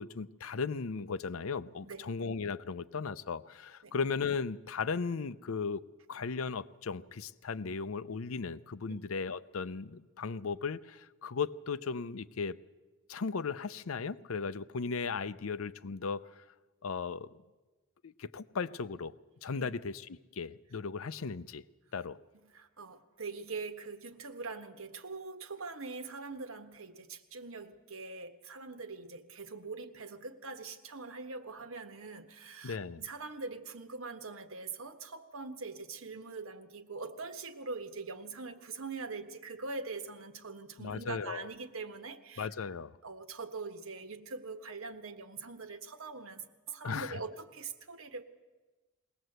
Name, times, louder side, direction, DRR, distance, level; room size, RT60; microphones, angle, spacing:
voice 1, 0.0-5.8 6.1-12.6 13.1-16.4 16.8-17.3 18.0-19.1 19.4-21.6 21.9-22.2 32.6-33.0 40.8-41.5 42.4-42.9 46.8-47.2, left 5 dB, 85° left, 0.6 m, -36 dB
voice 2, 22.4-42.5 43.0-48.3, right 4 dB, 80° right, 1.4 m, -43 dB
21.0 x 18.0 x 7.9 m
head